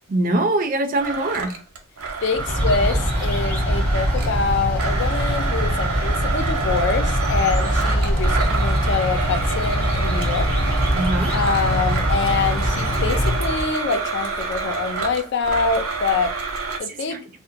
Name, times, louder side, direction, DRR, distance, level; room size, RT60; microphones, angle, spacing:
voice 1, 0.1-1.5 10.9-11.3 16.9-17.2, right 2 dB, 40° right, 0.4 m, -23 dB
Domestic sounds home sounds, 1.0-4.4 4.8-16.8, right 4 dB, 90° right, 0.6 m, -28 dB
voice 2, 2.2-10.5 11.3-16.4 16.8-17.3, left 4 dB, 55° left, 0.4 m, -25 dB
sound 1, 2.3-13.7, equal, 10° left, 0.7 m, -22 dB
2.7 x 2.1 x 2.5 m
head